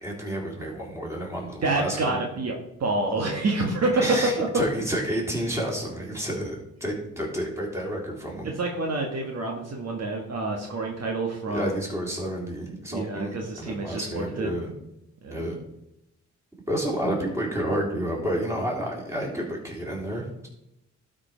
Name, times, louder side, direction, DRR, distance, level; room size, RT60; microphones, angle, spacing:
voice 1, 0.0-2.2 4.0-8.5 11.5-14.7 15.3-15.6 16.7-20.5, equal, 10° right, -2 dB, 3.6 m, -30 dB
voice 2, 1.6-4.5 8.4-11.7 12.9-14.5 15.2-15.4, right 2 dB, 55° right, 1 dB, 1.6 m, -27 dB
12.0 x 5.1 x 4.5 m, 0.85 s
cardioid pair, 75°, 31 cm